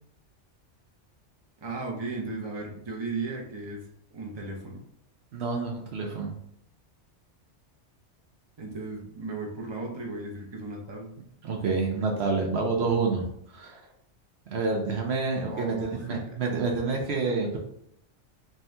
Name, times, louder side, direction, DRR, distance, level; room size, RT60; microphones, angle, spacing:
voice 1, 1.6-3.9 4.1-4.8 8.6-11.1 15.5-16.4, right 3 dB, 25° right, -1 dB, 0.7 m, -35 dB
voice 2, 5.3-6.3 11.4-13.3 13.5-13.8 14.5-17.6, right 4 dB, 65° right, 1 dB, 0.8 m, -28 dB
3.6 x 2.8 x 3.3 m, 0.73 s
omnidirectional pair, 1.3 m